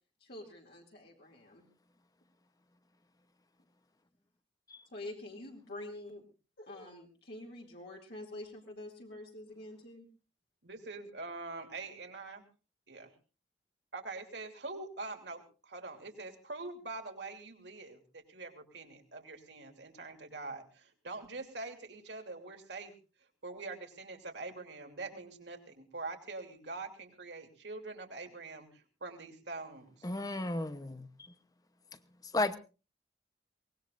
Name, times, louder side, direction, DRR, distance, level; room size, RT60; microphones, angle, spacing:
voice 1, 0.2-1.7 4.9-6.2 6.6-10.1, left 1 dB, 60° left, 2.5 m, -47 dB
voice 2, 10.6-12.4 12.9-13.1 13.9-22.9 23.4-30.1, right 3 dB, 70° right, 3.0 m, -44 dB
voice 3, 30.0-31.1 32.3-32.6, left 2 dB, 20° left, 0.8 m, -33 dB
23.5 x 19.5 x 2.5 m
head